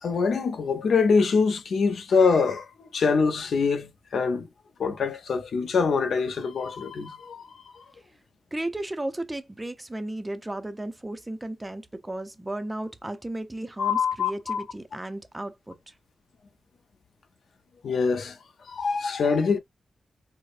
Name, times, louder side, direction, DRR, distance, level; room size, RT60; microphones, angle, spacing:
voice 1, 0.0-4.5 4.8-7.5 7.7-7.8 13.8-14.6 17.8-18.4 18.6-19.6, left 5 dB, 75° left, 0.6 m, -24 dB
voice 2, 8.5-15.9, right 1 dB, 15° right, 0.5 m, -34 dB
4.7 x 2.0 x 2.5 m
wide cardioid pair, 150°, 0 cm